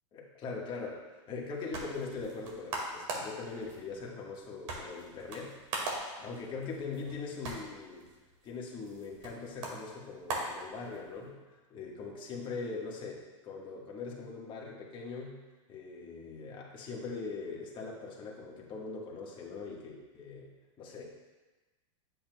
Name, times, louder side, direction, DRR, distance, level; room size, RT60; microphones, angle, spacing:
voice 1, 0.1-8.1 8.4-15.4 15.7-21.1, left 4 dB, 30° left, -2 dB, 1.5 m, -41 dB
sound 1, 1.3-11.3, right 2 dB, 65° right, 1.9 m, -42 dB
8.4 x 7.8 x 2.3 m, 1.2 s
supercardioid pair, 135°, 17 cm